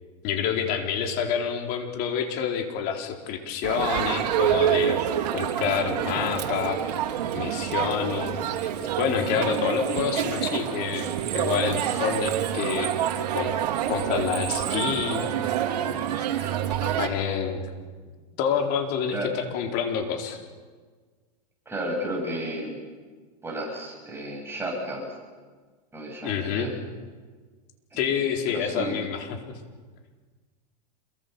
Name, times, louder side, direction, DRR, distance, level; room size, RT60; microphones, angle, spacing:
voice 1, 0.2-5.0 5.3-6.8 7.3-8.4 9.0-11.1 11.3-13.0 13.3-13.5 13.9-15.3 16.8-17.7 18.4-20.4 26.2-26.7 27.9-29.5, left 7 dB, 50° left, 4 dB, 4.4 m, -28 dB
Crowd, 3.6-17.1, right 10 dB, 70° right, 3.2 m, -27 dB
voice 2, 21.7-22.8 23.4-25.0 25.9-26.7 27.9-28.0 28.5-29.0, right 1 dB, 10° right, -1 dB, 7.8 m, -32 dB
27.5 x 23.5 x 7.1 m, 1.5 s
hypercardioid pair, 120°, 21 cm